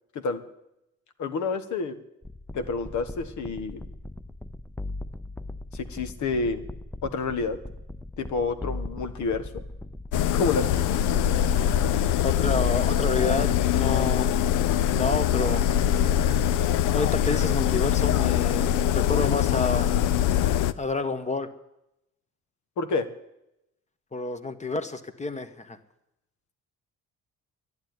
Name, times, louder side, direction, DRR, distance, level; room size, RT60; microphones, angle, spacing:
voice 1, 1.2-2.0 2.5-3.8 5.7-6.6 7.0-7.6 8.2-9.5 10.3-11.0 22.8-23.1, left 4 dB, 70° left, 10 dB, 1.5 m, -29 dB
sound 1, 2.2-15.5, left 2 dB, 5° left, 0.5 m, -39 dB
sound 2, 10.1-20.7, left 10 dB, 90° left, 0.6 m, -23 dB
voice 2, 12.2-14.4 14.9-15.6 16.7-20.0 20.8-21.5 24.1-25.8, left 3 dB, 25° left, 10 dB, 1.3 m, -29 dB
11.0 x 11.0 x 9.5 m, 0.87 s
cardioid pair, 90°, 30 cm